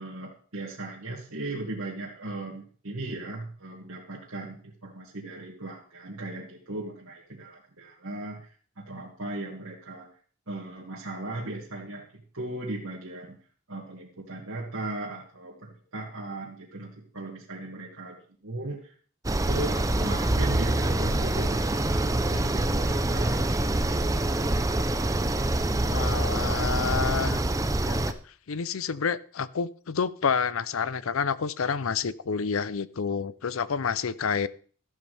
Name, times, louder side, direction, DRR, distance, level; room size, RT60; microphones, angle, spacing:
voice 1, 0.0-10.1 10.5-12.1 12.3-13.4 13.7-18.2 18.4-18.9 19.5-21.6 22.0-23.5 23.9-24.1, right 2 dB, 80° right, -4 dB, 2.3 m, -37 dB
sound 1, 19.2-28.1, right 1 dB, 15° right, 0.6 m, -25 dB
voice 2, 25.8-28.0 28.5-34.5, left 6 dB, 70° left, 17 dB, 0.6 m, -29 dB
13.5 x 12.0 x 3.4 m, 0.44 s
head